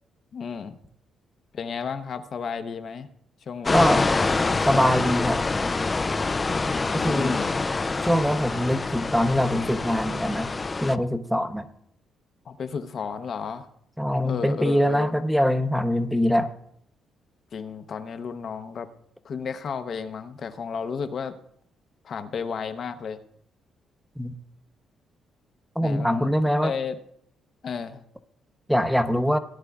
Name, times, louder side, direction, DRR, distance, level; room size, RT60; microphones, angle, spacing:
voice 1, 0.3-0.7 1.5-3.1 3.5-3.9 6.8-7.6 12.5-13.7 14.3-15.1 17.5-18.9 19.2-21.3 22.0-23.2 25.8-27.0 27.6-28.0, left 6 dB, 55° left, 9 dB, 0.7 m, -33 dB
sound 1, 3.6-10.9, left 3 dB, 25° left, 0.4 m, -26 dB
voice 2, 3.7-4.1 4.7-5.4 6.9-7.4 8.0-10.5 10.8-11.7 14.0-16.5 24.2-24.3 25.8-26.7 28.7-29.4, equal, ahead, 9 dB, 0.7 m, -23 dB
17.5 x 9.6 x 2.4 m, 0.70 s
cardioid pair, 90°, 0 cm